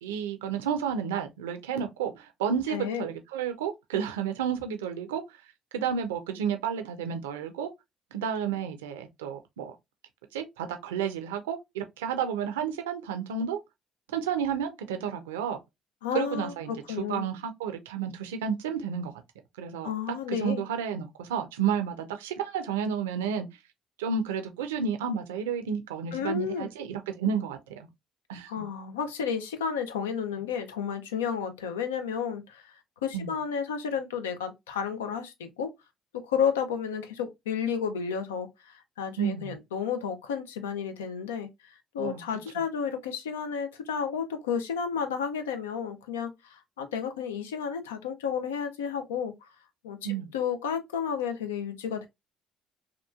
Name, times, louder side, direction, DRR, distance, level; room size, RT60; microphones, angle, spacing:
voice 1, 0.0-5.2 5.7-7.7 8.1-9.7 10.3-13.6 14.1-15.6 16.1-19.1 19.6-23.5 24.0-27.6 28.3-28.6 33.1-33.3 39.2-39.6 42.0-42.2 50.0-50.3, right 7 dB, 85° right, 0.4 m, -31 dB
voice 2, 2.7-3.1 16.0-17.3 19.8-20.6 26.1-26.7 28.5-32.7 33.0-35.7 36.1-41.5 41.9-49.5 49.8-50.0 50.3-52.1, left 7 dB, 90° left, 0.4 m, -32 dB
2.9 x 2.3 x 2.2 m
hypercardioid pair, 55°, 0 cm